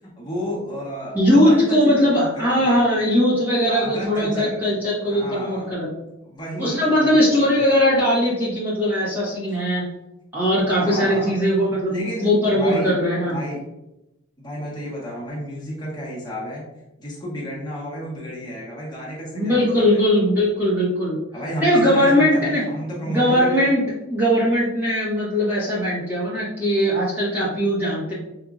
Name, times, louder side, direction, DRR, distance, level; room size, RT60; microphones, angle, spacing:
voice 1, 0.2-2.8 3.7-4.6 5.0-5.7 6.2-7.7 10.7-11.4 11.9-12.9 13.2-13.6 14.4-16.6 17.0-20.0 21.3-23.7, equal, 20° left, -6 dB, 1.3 m, -31 dB
voice 2, 1.1-5.9 6.6-9.8 10.3-13.4 19.3-21.2 21.6-22.6 23.1-23.8 24.1-28.1, equal, 10° right, -11 dB, 1.2 m, -20 dB
5.3 x 2.7 x 2.4 m, 0.92 s
head